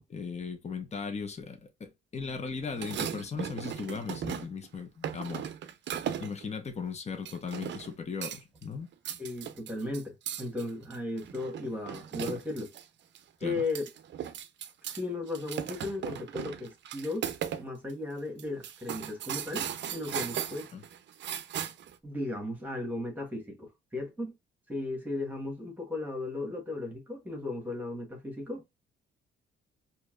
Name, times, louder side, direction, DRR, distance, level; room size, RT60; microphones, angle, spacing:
voice 1, 0.1-5.5 6.2-8.9 13.4-13.5 20.7-20.8, left 5 dB, 35° left, 0.9 m, -37 dB
sound 1, 2.7-4.7 5.0-6.4 7.3-7.9 8.2-8.6 8.9-12.8 13.1-13.2 13.6-15.0 15.3-17.6 17.9-18.0 18.4-21.9, right 9 dB, 65° right, 0.5 m, -37 dB
voice 2, 9.2-12.7 13.4-13.8 14.9-17.3 17.6-20.7 22.0-24.4 24.7-28.6, left 2 dB, 10° right, 1.4 m, -36 dB
4.5 x 2.8 x 2.3 m
cardioid pair, 90°, 20 cm